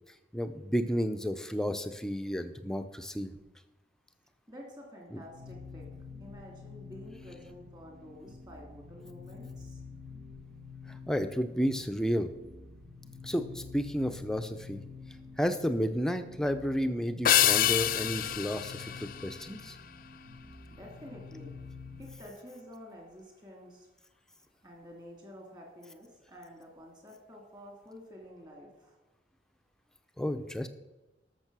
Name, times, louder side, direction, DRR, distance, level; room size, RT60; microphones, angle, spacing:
voice 1, 0.3-3.3 5.1-5.2 10.9-12.3 13.2-14.8 15.4-19.7 30.2-30.7, equal, 5° left, 7 dB, 0.6 m, -32 dB
voice 2, 4.5-5.9 6.2-9.8 20.7-21.6 22.0-23.9 24.6-29.0, equal, 25° right, 0 dB, 2.5 m, -49 dB
sound 1, 5.2-22.2, left 4 dB, 55° right, 1.2 m, -48 dB
sound 2, 17.2-19.9, left 11 dB, 50° left, 0.5 m, -27 dB
12.0 x 6.7 x 6.2 m, 1.1 s
head